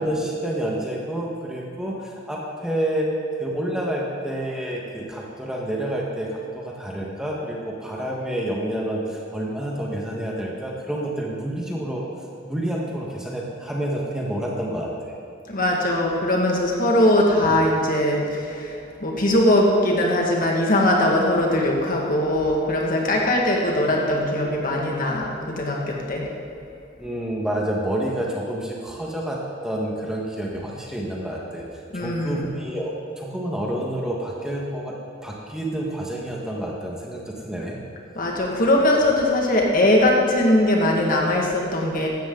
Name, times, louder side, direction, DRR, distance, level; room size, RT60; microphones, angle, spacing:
voice 1, 0.0-3.1 3.4-12.0 12.4-15.1 27.0-31.6 31.9-34.9 35.2-37.8, right 1 dB, 5° right, -3 dB, 1.6 m, -28 dB
voice 2, 15.5-26.2 31.9-32.5 38.2-42.1, left 1 dB, 45° left, -1 dB, 2.0 m, -20 dB
15.5 x 12.5 x 4.0 m, 2.4 s
head